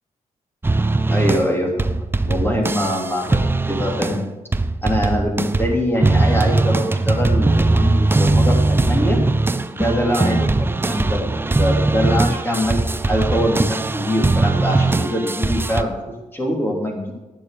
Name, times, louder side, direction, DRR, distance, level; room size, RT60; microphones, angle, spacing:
sound 1, 0.6-4.3 4.5-15.8, right 2 dB, 15° right, 0.6 m, -20 dB
voice 1, 1.1-2.0 2.2-4.3 4.8-9.2 9.7-12.8 13.1-17.1, equal, 15° left, 0 dB, 3.1 m, -23 dB
11.5 x 9.2 x 6.7 m, 1.1 s
wide cardioid pair, 105°, 13 cm